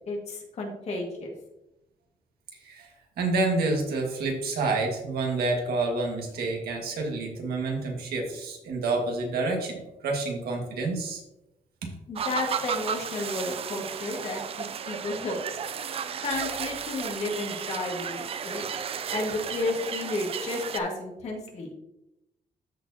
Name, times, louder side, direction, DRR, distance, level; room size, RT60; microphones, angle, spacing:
voice 1, 0.1-1.3 12.1-15.4 16.2-18.7 19.1-21.7, left 2 dB, 45° left, -1 dB, 1.9 m, -32 dB
voice 2, 3.2-11.2 19.0-19.2, right 3 dB, 90° right, 1 dB, 1.7 m, -28 dB
sound 1, 12.2-20.8, right 7 dB, 40° right, 0.4 m, -34 dB
13.5 x 4.4 x 2.8 m, 0.90 s
wide cardioid pair, 180°, 16 cm